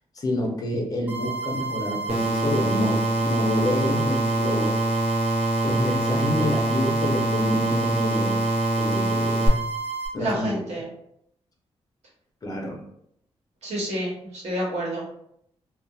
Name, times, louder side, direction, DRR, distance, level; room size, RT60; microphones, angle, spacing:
voice 1, 0.1-4.8 5.6-8.5 8.8-9.5 10.1-10.5 12.4-12.8, left 1 dB, 35° left, 1 dB, 0.6 m, -28 dB
sound 1, 1.1-10.1, right 5 dB, 15° right, 0.9 m, -31 dB
sound 2, 2.1-9.5, right 1 dB, 60° right, 0.6 m, -24 dB
voice 2, 10.2-10.9 13.6-15.0, right 1 dB, 90° right, -4 dB, 1.0 m, -29 dB
2.7 x 2.0 x 2.3 m, 0.73 s
wide cardioid pair, 120°, 11 cm